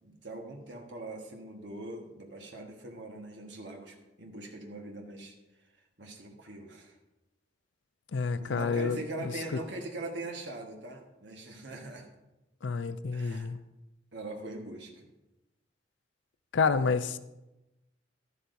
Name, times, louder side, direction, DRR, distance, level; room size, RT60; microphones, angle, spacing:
voice 1, 0.0-5.4 6.0-7.0 8.4-12.1 13.1-13.5 14.1-15.1, right 2 dB, 70° right, 2 dB, 1.4 m, -42 dB
voice 2, 8.1-9.0 9.2-9.3 12.6-13.6 16.5-17.2, left 5 dB, 85° left, 13 dB, 0.5 m, -28 dB
12.5 x 11.5 x 2.7 m, 1.0 s
head